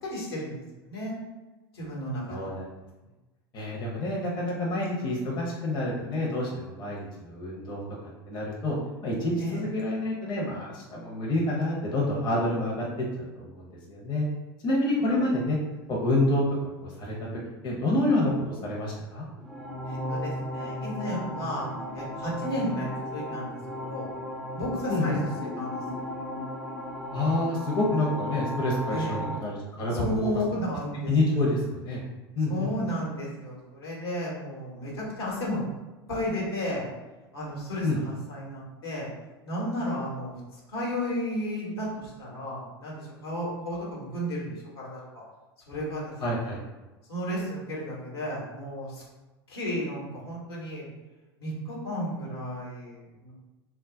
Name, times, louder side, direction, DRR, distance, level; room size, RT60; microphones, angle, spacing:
voice 1, 0.0-1.1 1.7-2.4 9.4-9.6 15.0-15.1 19.8-21.7 21.9-24.1 24.5-26.0 28.9-29.2 29.9-31.4 32.5-35.6 36.1-36.9 37.3-39.1 39.4-45.2 45.7-46.6 47.1-49.0 49.5-50.9 51.4-53.3, equal, 75° left, -4 dB, 1.1 m, -33 dB
voice 2, 2.3-2.7 3.5-7.8 8.3-8.8 9.0-13.1 13.4-14.3 14.6-15.6 15.9-16.4 16.8-17.1 17.6-19.3 24.9-25.2 27.1-30.2 31.1-32.0 32.4-32.7 37.8-38.0 46.2-46.6, left 2 dB, 35° left, -3 dB, 0.7 m, -28 dB
sound 1, 19.4-29.4, left 1 dB, ahead, 0.5 m, -35 dB
2.2 x 2.1 x 3.7 m, 1.1 s
hypercardioid pair, 85°, 13 cm